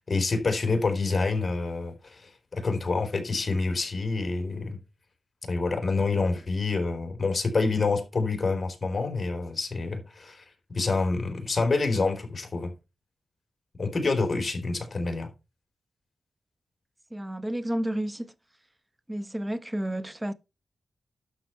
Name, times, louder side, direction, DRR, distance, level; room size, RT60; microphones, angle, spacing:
voice 1, 0.1-4.8 5.5-10.4 10.7-12.7 13.8-15.3, left 3 dB, 40° left, 4.0 m, -27 dB
voice 2, 17.1-18.3 19.1-20.3, right 1 dB, 15° right, 1.2 m, -31 dB
11.5 x 7.1 x 4.5 m
cardioid pair, 65°, 0 cm